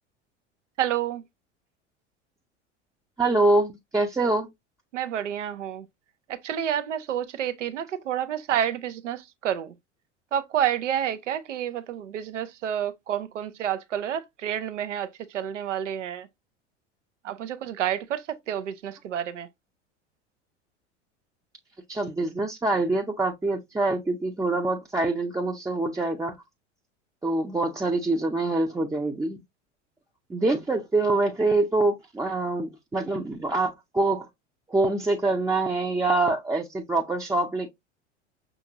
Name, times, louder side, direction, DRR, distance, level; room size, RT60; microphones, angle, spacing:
voice 1, 0.8-1.2 4.9-5.9 6.3-9.7 10.3-16.3 17.2-19.5, right 10 dB, 85° right, 0.6 m, -29 dB
voice 2, 3.2-4.5 21.9-26.3 27.2-29.4 30.3-34.3 34.7-37.7, right 2 dB, 10° right, 0.6 m, -25 dB
5.8 x 2.5 x 2.8 m
hypercardioid pair, 85°, 36 cm